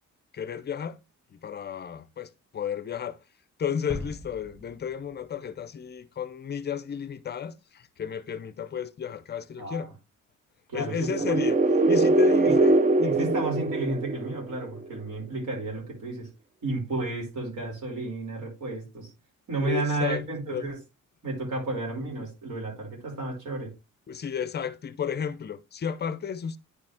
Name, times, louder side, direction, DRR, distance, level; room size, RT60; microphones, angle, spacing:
voice 1, 0.3-1.0 1.4-3.2 3.6-9.9 10.7-13.3 19.6-20.2 20.5-20.7 24.1-26.6, left 7 dB, 35° left, 0.5 m, -33 dB
sound 1, 3.9-5.8 6.2-6.3, left 2 dB, ahead, 1.7 m, -41 dB
voice 2, 9.6-9.9 10.7-11.1 12.4-12.6 13.0-16.3 16.6-19.1 19.5-20.8 21.2-23.7, right 2 dB, 65° right, 5.6 m, -32 dB
sound 2, 11.0-14.8, right 2 dB, 25° right, 0.5 m, -22 dB
9.8 x 5.1 x 3.5 m
wide cardioid pair, 170°, 31 cm